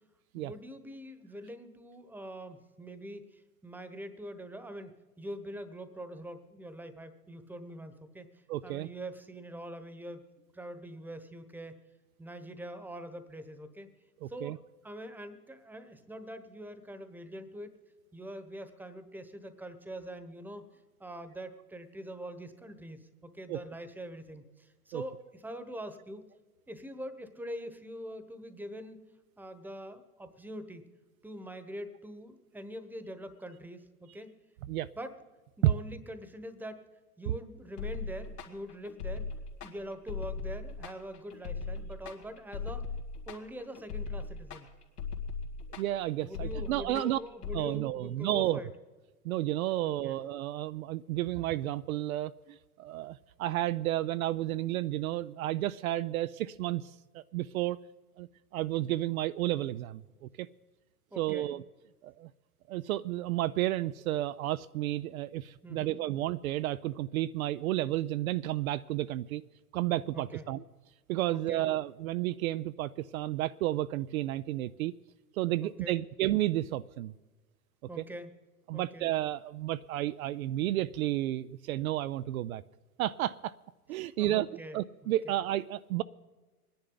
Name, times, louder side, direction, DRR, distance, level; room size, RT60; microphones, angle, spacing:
voice 1, 0.3-8.3 8.6-10.2 10.5-11.8 12.2-13.9 14.3-17.7 18.1-26.2 26.7-29.0 29.4-30.9 31.2-34.3 35.0-35.1 35.6-36.8 37.2-39.3 39.6-42.8 43.3-44.7 46.2-48.7 49.8-50.2 61.1-61.5 65.6-66.0 70.1-70.4 71.3-71.7 75.6-76.0 77.9-78.3 78.7-79.1 84.0-85.4, right 1 dB, 5° right, 11 dB, 1.1 m, -44 dB
voice 2, 8.5-8.9 14.2-14.6 23.5-23.6 24.9-25.0 34.7-34.9 45.7-47.2 47.5-48.7 49.2-57.8 58.2-60.0 60.4-60.5 61.2-61.6 62.0-62.3 62.7-69.4 69.7-70.6 71.1-74.9 75.3-77.1 78.0-78.1 78.7-82.6 83.0-83.5 83.9-84.5 84.7-86.0, right 15 dB, 65° right, 15 dB, 0.5 m, -32 dB
sound 1, 37.8-47.6, left 4 dB, 80° left, 2.4 m, -39 dB
24.0 x 10.5 x 3.9 m, 1.3 s
hypercardioid pair, 95°, 46 cm